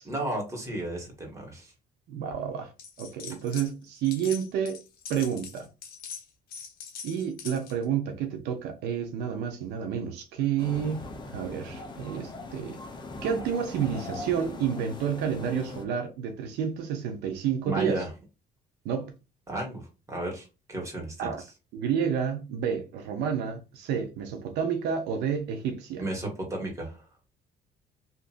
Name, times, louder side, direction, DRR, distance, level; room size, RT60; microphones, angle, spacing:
voice 1, 0.0-1.7 17.6-18.1 19.5-21.3 26.0-27.0, right 1 dB, 15° right, 1.4 m, -33 dB
voice 2, 2.1-2.7 3.0-4.8 5.1-5.7 7.0-12.8 13.2-18.0 18.8-19.1 21.2-21.4 21.7-26.0, right 8 dB, 85° right, 0.6 m, -30 dB
sound 1, 2.8-3.7 4.0-7.8, left 7 dB, 60° left, 0.7 m, -42 dB
sound 2, 10.6-15.8, left 3 dB, 25° left, 0.7 m, -40 dB
2.8 x 2.5 x 2.4 m
cardioid pair, 110°, 17 cm